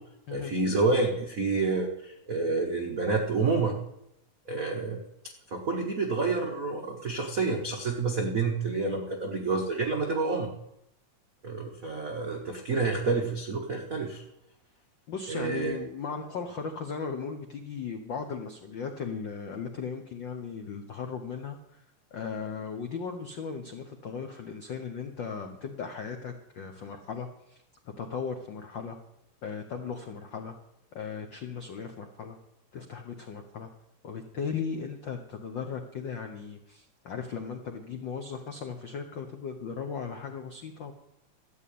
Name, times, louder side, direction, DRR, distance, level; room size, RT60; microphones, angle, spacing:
voice 1, 0.3-3.8 4.5-5.0 5.5-10.5 11.4-14.2 15.3-15.8, right 3 dB, 80° right, 1 dB, 0.7 m, -28 dB
voice 2, 15.1-21.8 22.1-27.6 28.0-29.0 29.4-30.6 30.9-32.4 32.7-33.7 34.0-40.9, left 6 dB, 90° left, 5 dB, 1.0 m, -37 dB
13.5 x 7.2 x 8.5 m, 0.83 s
omnidirectional pair, 3.5 m